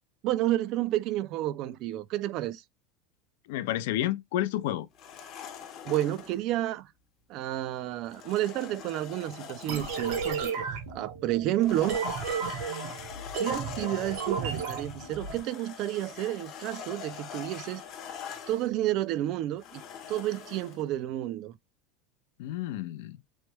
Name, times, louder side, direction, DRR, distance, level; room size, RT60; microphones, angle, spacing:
voice 1, 0.2-2.6 5.8-6.9 7.3-12.0 13.4-17.8 18.5-19.8 20.1-21.6, right 14 dB, 55° right, 0.3 m, -30 dB
voice 2, 3.5-4.9 22.4-23.2, left 13 dB, 75° left, 0.4 m, -30 dB
sound 1, 4.9-6.4 8.1-10.7 11.5-18.7 19.6-20.8, left 7 dB, 45° left, 0.7 m, -43 dB
sound 2, 9.7-15.4, right 6 dB, 70° right, 1.0 m, -33 dB
3.1 x 2.1 x 3.2 m
supercardioid pair, 125°, 0 cm